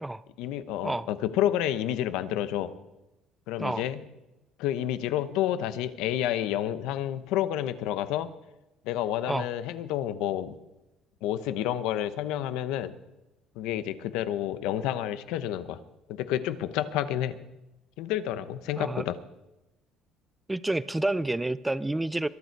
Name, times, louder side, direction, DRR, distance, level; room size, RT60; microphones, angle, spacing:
voice 1, 0.4-2.7 3.5-4.0 4.6-8.3 8.9-10.5 11.2-13.0 13.6-15.8 16.1-17.4 18.0-19.2, left 12 dB, 80° left, 13 dB, 0.9 m, -29 dB
voice 2, 20.5-22.3, right 2 dB, 5° right, 17 dB, 0.4 m, -29 dB
22.0 x 9.4 x 4.6 m, 0.96 s
cardioid pair, 175°, 0 cm